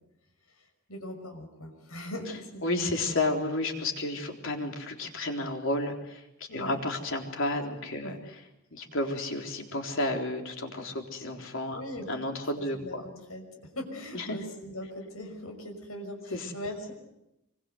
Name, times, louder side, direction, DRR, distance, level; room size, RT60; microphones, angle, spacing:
voice 1, 0.6-2.6 6.5-6.8 8.0-8.2 11.7-12.1 12.7-13.4 13.7-16.9, left 1 dB, 85° left, 4 dB, 6.0 m, -40 dB
voice 2, 2.6-8.4 8.7-11.8 12.1-13.0 14.1-14.4 16.3-16.5, left 2 dB, 65° left, 3 dB, 3.9 m, -32 dB
25.0 x 24.5 x 8.0 m, 0.88 s
head